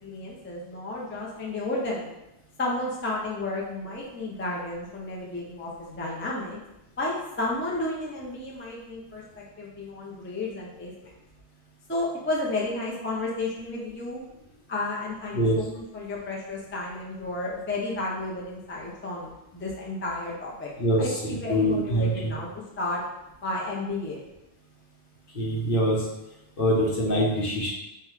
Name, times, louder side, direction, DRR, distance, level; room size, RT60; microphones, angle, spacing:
voice 1, 0.0-2.1 2.6-6.6 7.0-10.9 11.9-14.2 14.7-20.7 21.0-22.5 22.8-23.0 23.4-24.2, left 2 dB, 15° left, -3 dB, 0.5 m, -32 dB
voice 2, 20.8-22.3 25.3-26.1 26.6-27.7, equal, 60° left, -4 dB, 1.1 m, -24 dB
5.3 x 2.2 x 3.1 m, 0.91 s
omnidirectional pair, 1.1 m